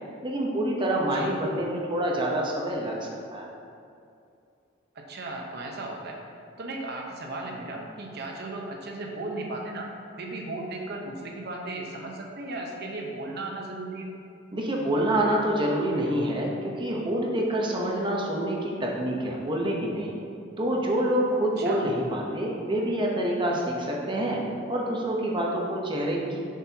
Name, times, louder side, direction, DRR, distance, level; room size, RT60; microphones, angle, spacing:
voice 1, 0.2-3.5 14.5-20.2 20.6-24.4 24.7-26.4, right 1 dB, 25° right, -2 dB, 0.9 m, -27 dB
voice 2, 1.1-1.4 4.9-6.2 6.6-9.9 10.1-14.1 21.6-21.9, right 2 dB, 55° right, 0 dB, 0.9 m, -36 dB
7.3 x 6.2 x 2.9 m, 2.5 s
head